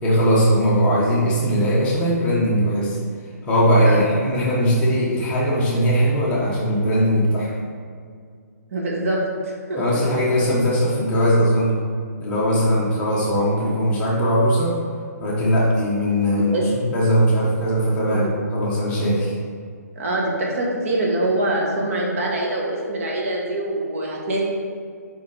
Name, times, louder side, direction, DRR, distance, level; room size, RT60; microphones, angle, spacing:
voice 1, 0.0-3.0 3.4-7.5 9.8-11.8 12.2-14.8 15.2-19.3, equal, 15° left, -6 dB, 1.2 m, -19 dB
voice 2, 8.7-9.8 16.5-16.7 18.0-18.2 19.9-24.4, right 1 dB, 50° right, -2 dB, 1.4 m, -24 dB
5.1 x 5.1 x 4.9 m, 2.1 s
hypercardioid pair, 155°, 9 cm